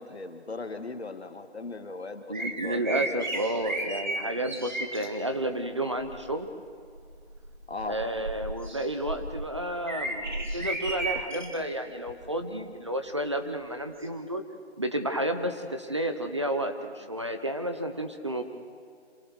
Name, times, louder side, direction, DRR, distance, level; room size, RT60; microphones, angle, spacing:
voice 1, 0.0-3.2 7.7-8.0, left 3 dB, 70° left, 7 dB, 2.4 m, -38 dB
voice 2, 2.3-6.5 7.8-14.4 14.8-18.4, right 1 dB, 25° right, 7 dB, 1.0 m, -31 dB
sound 1, 2.3-5.1 5.9-6.3 6.9-11.6 12.1-12.2 14.0-14.1, right 2 dB, 45° right, 2.7 m, -34 dB
27.5 x 24.5 x 6.3 m, 2.1 s
figure-of-eight pair, 175°, 34 cm